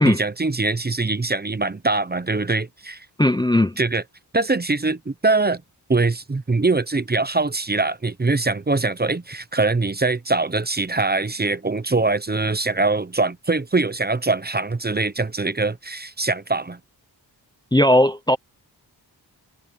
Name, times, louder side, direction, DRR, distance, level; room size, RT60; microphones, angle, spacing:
voice 1, 0.0-3.1 3.8-4.0 4.3-5.6 5.9-16.8, right 3 dB, 25° right, 0.8 m, -23 dB
voice 2, 3.2-3.8 17.7-18.4, left 1 dB, 10° left, 0.6 m, -17 dB
wide cardioid pair, 90°, 41 cm